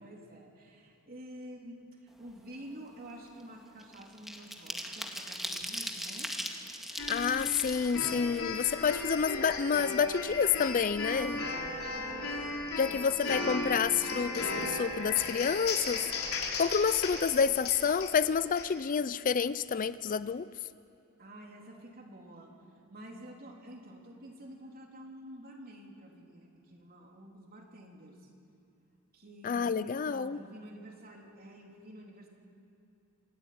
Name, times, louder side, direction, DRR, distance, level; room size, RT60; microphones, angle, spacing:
voice 1, 0.0-6.3 11.9-13.6 21.2-22.5 22.9-28.3 29.1-32.3, right 1 dB, 45° right, 0 dB, 3.5 m, -49 dB
sound 1, 2.2-2.4 2.8-9.2 9.6-9.7 10.0-11.0 11.3-11.4 11.7-12.0, equal, ahead, 1.8 m, -40 dB
sound 2, 7.0-18.7, left 3 dB, 85° left, 3.7 m, -36 dB
voice 2, 7.1-11.5 12.8-16.0 16.6-20.5 29.4-30.4, left 6 dB, 40° left, 15 dB, 0.4 m, -29 dB
26.5 x 14.0 x 9.4 m, 2.9 s
head